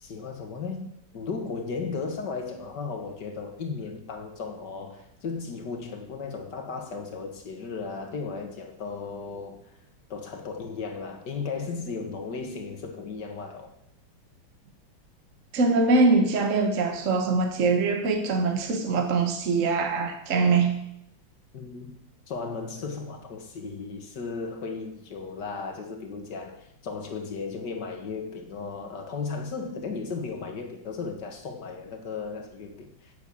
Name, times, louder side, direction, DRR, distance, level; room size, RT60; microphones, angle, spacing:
voice 1, 0.0-9.7 10.1-13.7 21.5-22.0 22.3-33.1, left 4 dB, 55° left, 4 dB, 2.2 m, -35 dB
voice 2, 15.5-20.8, right 3 dB, 45° right, 5 dB, 1.4 m, -23 dB
10.0 x 8.0 x 7.1 m, 0.76 s
omnidirectional pair, 2.2 m